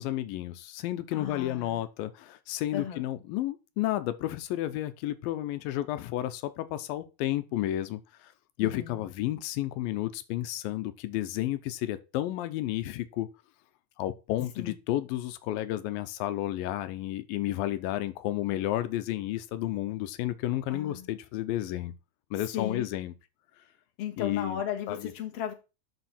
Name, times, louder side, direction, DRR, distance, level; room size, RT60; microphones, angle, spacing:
voice 1, 0.0-8.3 8.6-13.3 14.0-21.9 22.3-23.1 24.2-24.6 24.9-25.1, left 14 dB, 90° left, 2.5 m, -32 dB
voice 2, 1.1-1.8 2.7-3.0 8.6-9.0 14.6-14.8 20.7-21.1 22.5-22.9 24.0-25.5, left 9 dB, 50° left, 2.5 m, -35 dB
12.0 x 5.6 x 4.3 m
omnidirectional pair, 4.0 m